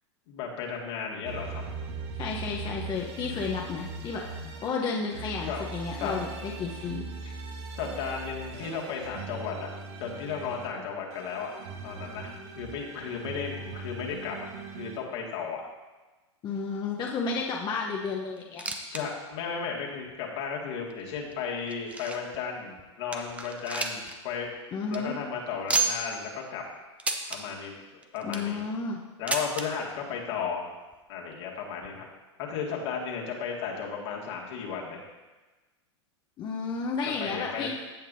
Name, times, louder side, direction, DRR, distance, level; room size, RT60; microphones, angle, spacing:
voice 1, 0.3-1.6 5.4-5.7 5.9-6.1 7.2-7.3 7.8-9.7 10.0-11.5 11.8-14.5 14.8-15.6 18.9-24.5 24.9-26.6 27.3-27.8 28.1-28.6 29.2-30.7 31.1-32.1 32.4-35.0 37.2-37.7, left 6 dB, 65° left, -2 dB, 2.1 m, -34 dB
sound 1, 1.3-4.7 5.1-10.7 11.1-15.0, right 4 dB, 65° right, 1.5 m, -40 dB
voice 2, 2.1-7.0 16.4-18.8 24.7-25.1 28.2-29.0 36.4-37.7, left 4 dB, 30° left, -1 dB, 0.9 m, -32 dB
sound 2, 18.4-19.0 19.3-19.4 20.1-20.2 20.9-22.4 22.8-22.9 23.1-24.2 24.5-24.6 24.8-25.0 25.7-26.2 27.0-27.4 28.0-28.5 29.3-29.7 30.6-30.7 30.9-31.0 31.8-31.9, right 3 dB, 10° right, 0.7 m, -31 dB
15.5 x 5.9 x 2.7 m, 1.2 s
hypercardioid pair, 120°, 15 cm